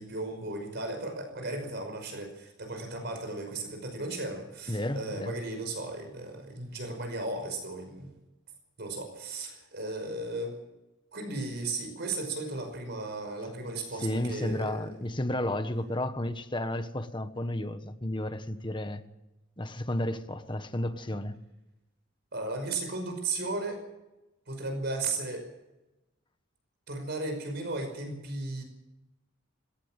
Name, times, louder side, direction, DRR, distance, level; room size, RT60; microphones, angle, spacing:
voice 1, 0.0-8.1 8.8-10.6 11.1-14.9 22.3-23.8 24.5-25.5 26.9-28.6, right 2 dB, 55° right, 5.5 m, -35 dB
voice 2, 4.7-5.4 14.0-19.0 19.6-21.4, left 1 dB, 25° left, 1.4 m, -32 dB
19.0 x 18.0 x 7.5 m
head